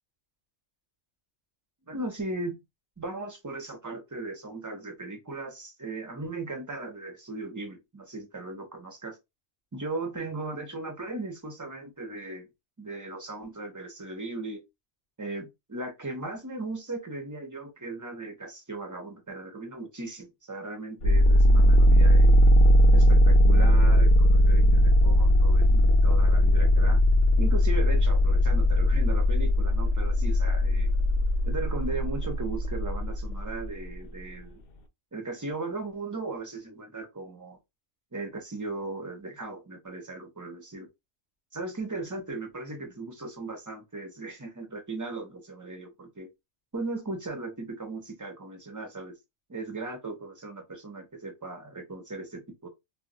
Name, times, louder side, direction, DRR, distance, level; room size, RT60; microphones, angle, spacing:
voice 1, 1.9-2.6 3.0-9.2 9.7-12.5 12.8-14.6 15.2-22.4 22.9-27.0 27.4-30.9 31.5-34.6 35.1-37.6 38.1-40.9 41.5-46.3 46.7-49.2 49.5-52.7, right 2 dB, 30° right, 0.3 m, -37 dB
sound 1, 21.0-33.7, equal, 60° left, 0.6 m, -19 dB
2.2 x 2.1 x 3.7 m
omnidirectional pair, 1.3 m